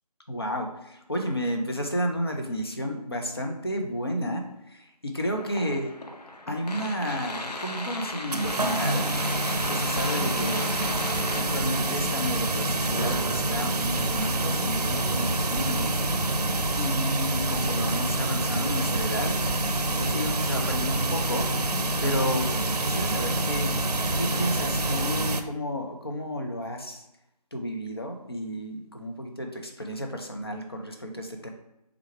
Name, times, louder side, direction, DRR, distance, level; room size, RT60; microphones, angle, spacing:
voice 1, 0.3-5.9 6.5-9.1 9.7-10.7 11.4-16.0 16.8-19.4 20.0-22.5 22.8-23.7 24.1-27.0 27.5-31.5, equal, 40° left, 2 dB, 0.6 m, -32 dB
sound 1, 5.4-11.4, left 2 dB, 80° left, 0.8 m, -36 dB
sound 2, 8.3-25.4, right 2 dB, 75° right, 0.5 m, -27 dB
3.6 x 3.2 x 4.5 m, 0.87 s
figure-of-eight pair, 175°, 20 cm